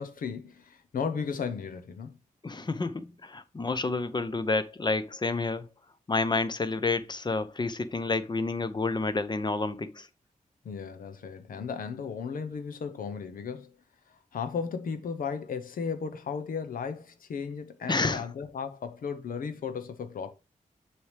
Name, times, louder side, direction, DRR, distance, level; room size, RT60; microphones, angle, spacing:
voice 1, 0.0-2.2 10.6-13.8 14.1-20.3, left 6 dB, 90° left, 0.8 m, -35 dB
voice 2, 2.4-5.6 6.1-10.1 17.9-18.2, left 3 dB, 30° left, 0.7 m, -29 dB
7.0 x 4.8 x 3.3 m
cardioid pair, 75°, 14 cm